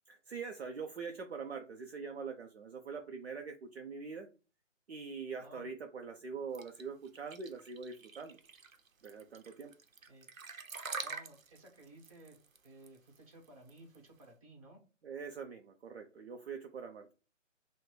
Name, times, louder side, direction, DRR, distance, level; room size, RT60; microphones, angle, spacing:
voice 1, 0.1-4.3 4.9-8.4 9.0-9.7 15.0-17.1, right 5 dB, 55° right, 3 dB, 0.6 m, -43 dB
voice 2, 5.4-5.7 10.1-10.3 11.0-12.4 12.6-14.8, right 1 dB, 25° right, 1 dB, 1.2 m, -56 dB
sound 1, 6.5-14.2, right 5 dB, 90° right, 0.8 m, -46 dB
5.7 x 2.2 x 3.2 m, 0.34 s
figure-of-eight pair, 155°, 39 cm